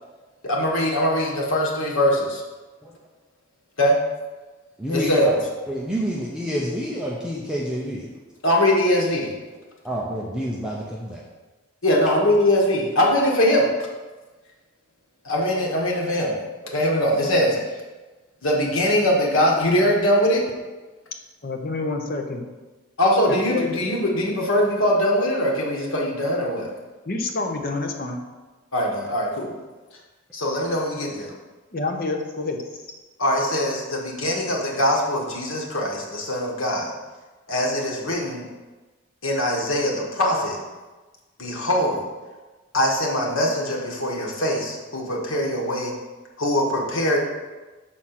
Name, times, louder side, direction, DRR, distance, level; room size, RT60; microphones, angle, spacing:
voice 1, 0.4-2.4 3.8-4.0 4.9-5.4 8.4-9.3 11.8-13.7 15.2-16.3 16.7-17.6 18.4-20.4 23.0-26.7 28.7-29.5 30.3-31.3 33.2-36.9 37.5-38.5 39.2-40.6 41.4-42.0 42.7-45.9 46.4-47.2, left 1 dB, 70° left, -2 dB, 1.5 m, -22 dB
voice 2, 4.8-5.3 5.7-8.1 9.8-11.2, equal, 5° right, -5 dB, 0.7 m, -28 dB
voice 3, 21.4-22.5 23.3-23.7 27.1-28.2 31.7-32.6, left 3 dB, 45° left, 3 dB, 0.7 m, -28 dB
6.3 x 4.3 x 5.9 m, 1.2 s
head